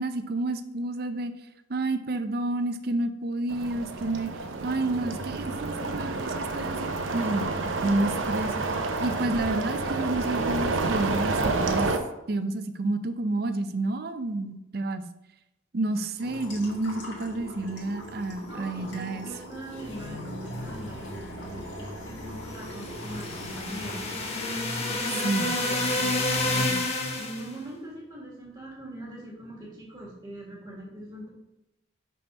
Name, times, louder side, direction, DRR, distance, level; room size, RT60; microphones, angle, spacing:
voice 1, 0.0-1.3 1.7-4.3 4.6-7.5 7.8-8.5 9.0-11.9 12.3-15.1 15.7-19.3 25.2-25.5, right 2 dB, 50° right, 10 dB, 0.5 m, -29 dB
sound 1, 3.5-12.0, right 3 dB, 85° right, 0.7 m, -29 dB
sound 2, 16.2-26.6, left 1 dB, 65° left, 1.6 m, -41 dB
voice 2, 18.5-24.1 24.9-26.8 27.2-31.3, right 1 dB, 20° right, -4 dB, 1.7 m, -42 dB
sound 3, 22.6-27.5, left 2 dB, 30° left, 0.9 m, -29 dB
5.3 x 4.3 x 5.3 m, 0.90 s
head